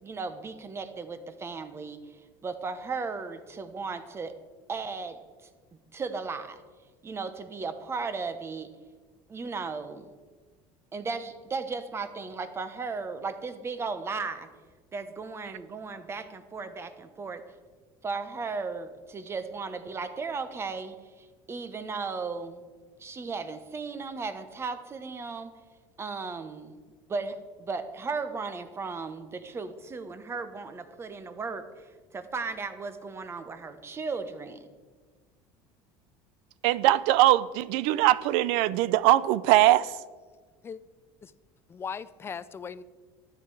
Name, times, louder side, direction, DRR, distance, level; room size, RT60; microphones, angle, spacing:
voice 1, 0.0-2.2 2.4-4.3 4.7-5.2 5.9-6.6 7.0-8.7 9.3-10.1 10.9-14.5 14.9-17.4 18.0-22.6 23.0-25.5 26.0-26.8 27.1-31.6 32.1-34.7, right 4 dB, 25° right, 1.0 m, -35 dB
voice 2, 36.6-39.9, right 15 dB, 75° right, 0.5 m, -21 dB
voice 3, 41.7-42.8, left 6 dB, 25° left, 0.5 m, -38 dB
12.5 x 9.2 x 4.8 m
supercardioid pair, 120°, 11 cm